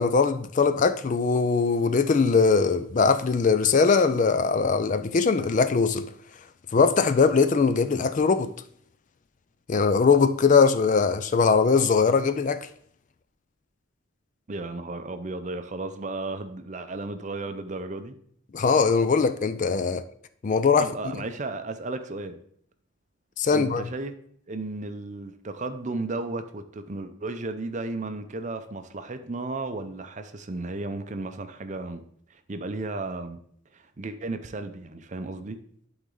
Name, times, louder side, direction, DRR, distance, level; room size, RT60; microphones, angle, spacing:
voice 1, 0.0-6.1 6.7-8.5 9.7-12.7 18.5-20.0 20.4-20.8 23.4-23.9, left 5 dB, 40° left, 0.4 m, -21 dB
voice 2, 14.5-18.2 20.8-22.4 23.5-24.1 24.5-32.0 32.3-33.4 33.7-35.6, right 2 dB, 35° right, 0.6 m, -34 dB
11.5 x 4.0 x 3.8 m
head